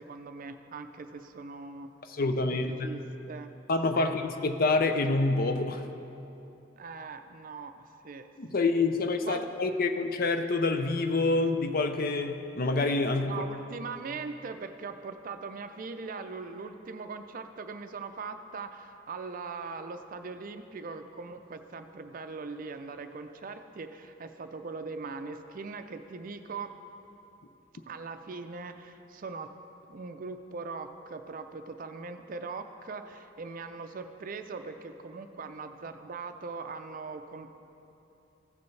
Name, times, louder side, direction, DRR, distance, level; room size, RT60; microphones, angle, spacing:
voice 1, 0.0-1.9 2.4-3.0 3.3-3.5 3.9-4.2 6.8-8.3 8.5-8.7 9.3-9.4 13.2-26.7 27.9-29.5 29.9-37.5, right 4 dB, 45° right, 8 dB, 0.4 m, -40 dB
voice 2, 2.1-2.9 3.7-5.8 8.4-13.3, left 3 dB, 50° left, 7 dB, 0.5 m, -27 dB
15.5 x 6.9 x 3.2 m, 2.9 s
head